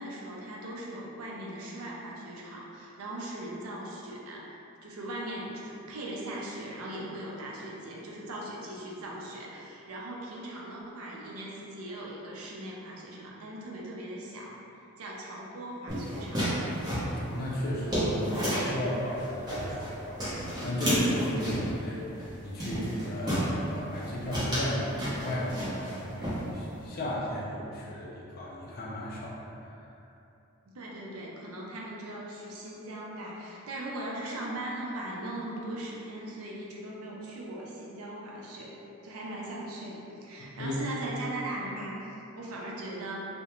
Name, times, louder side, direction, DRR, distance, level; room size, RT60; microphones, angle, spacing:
voice 1, 0.0-14.6 15.0-16.5 21.4-21.6 30.7-43.2, right 1 dB, 80° right, -3 dB, 0.4 m, -39 dB
sound 1, 15.9-18.8 19.2-19.9 20.2-21.7 22.2-22.3 22.6-23.5 23.9-24.1 24.3-26.0 26.2-26.8, equal, 20° right, 0.7 m, -31 dB
voice 2, 17.2-29.3 29.6-29.8 40.4-40.8, left 1 dB, 45° left, -5 dB, 0.4 m, -35 dB
2.4 x 2.1 x 2.9 m, 2.8 s
head